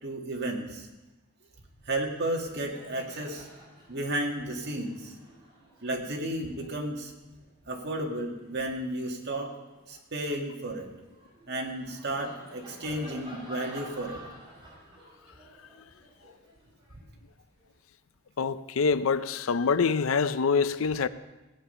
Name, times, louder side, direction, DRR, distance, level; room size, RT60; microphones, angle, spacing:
voice 1, 0.0-0.9 1.9-3.5 3.9-5.1 5.8-7.1 7.7-9.5 9.9-10.9 11.5-14.2, right 1 dB, 55° right, 2.1 m, -33 dB
Laughter, 1.8-2.0 2.2-8.9 9.5-17.6, equal, 20° right, 5.3 m, -51 dB
voice 2, 18.4-21.1, left 5 dB, 70° left, 0.5 m, -25 dB
17.0 x 8.9 x 5.6 m
head